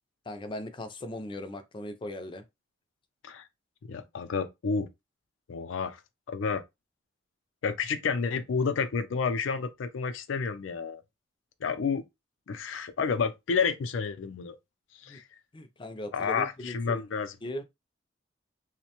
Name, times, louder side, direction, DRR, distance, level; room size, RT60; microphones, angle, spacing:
voice 1, 0.3-2.4 15.1-15.2 15.5-17.0 17.4-17.6, left 1 dB, 25° left, 0.4 m, -38 dB
voice 2, 3.8-4.9 5.5-6.0 6.3-6.6 7.6-11.0 11.6-12.0 12.5-14.6 14.9-15.2 16.1-17.3, left 5 dB, 90° left, 0.4 m, -30 dB
2.6 x 2.1 x 2.8 m
head